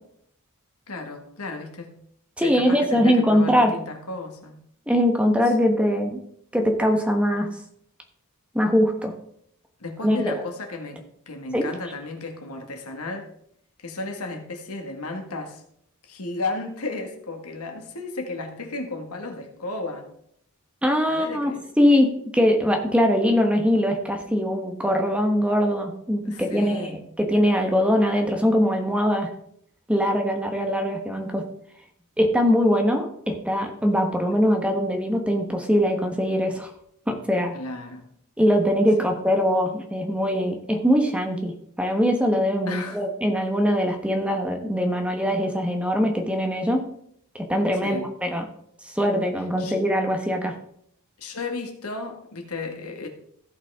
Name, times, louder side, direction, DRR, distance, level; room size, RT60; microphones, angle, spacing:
voice 1, 0.9-2.0 2.4-4.6 9.8-11.0 11.3-13.3 13.8-15.6 16.0-20.1 21.1-21.6 26.2-27.1 37.5-38.1 39.0-39.1 42.7-43.0 47.8-48.0 49.6-49.8 51.2-53.1, left 3 dB, 80° left, 4 dB, 1.9 m, -34 dB
voice 2, 2.4-3.7 4.9-6.2 6.5-7.5 8.5-9.1 10.0-10.3 11.5-11.7 20.8-21.5 21.8-29.3 29.9-31.4 32.2-36.7 37.1-37.5 38.4-41.5 41.8-46.8 47.5-48.4 48.8-50.5, equal, 5° right, 3 dB, 1.2 m, -22 dB
16.0 x 5.7 x 3.6 m, 0.69 s
head